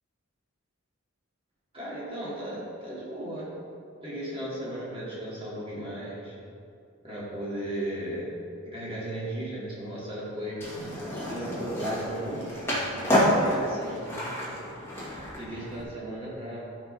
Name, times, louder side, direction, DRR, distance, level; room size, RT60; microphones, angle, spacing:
voice 1, 1.7-3.5 4.0-6.3 7.0-8.3 8.6-10.6 11.3-12.5 12.9-14.6 15.0-16.6, right 1 dB, 25° right, -7 dB, 2.7 m, -36 dB
Skateboard, 10.6-15.8, equal, 10° left, 1.9 m, -29 dB
12.5 x 5.2 x 5.5 m, 2.4 s
head